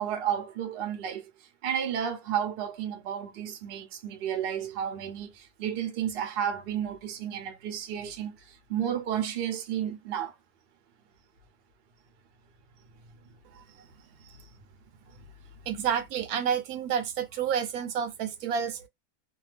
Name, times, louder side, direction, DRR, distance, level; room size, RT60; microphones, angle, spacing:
voice 1, 0.0-10.4 13.2-13.3 14.2-14.5 15.2-15.3, right 9 dB, 55° right, 0.7 m, -32 dB
voice 2, 15.7-18.9, right 8 dB, 75° right, 1.0 m, -29 dB
2.7 x 2.2 x 3.2 m
omnidirectional pair, 1.7 m